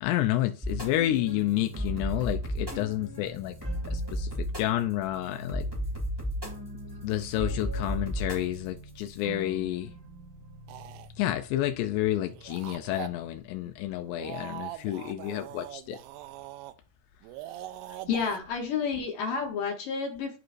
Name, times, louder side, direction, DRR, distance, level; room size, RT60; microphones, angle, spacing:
voice 1, 0.0-3.6 3.9-5.7 7.0-9.9 11.2-16.0, left 13 dB, 85° left, 2.6 m, -30 dB
sound 1, 0.6-13.2, equal, 20° right, 0.7 m, -36 dB
sound 2, 10.7-11.1 12.3-13.1 14.0-16.7 17.2-18.4, right 13 dB, 85° right, 2.7 m, -42 dB
voice 2, 18.1-20.4, left 5 dB, 70° left, 2.3 m, -30 dB
13.5 x 4.7 x 2.5 m
omnidirectional pair, 4.8 m